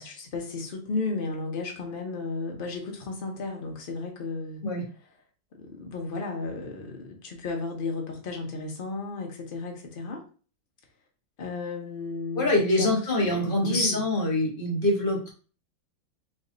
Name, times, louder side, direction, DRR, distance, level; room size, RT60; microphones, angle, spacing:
voice 1, 0.0-4.6 5.6-10.2 11.4-12.9 13.2-14.0, left 3 dB, 80° left, 1 dB, 0.4 m, -34 dB
voice 2, 12.3-15.3, left 1 dB, 30° left, -1 dB, 1.2 m, -25 dB
3.3 x 3.1 x 3.8 m, 0.38 s
omnidirectional pair, 2.0 m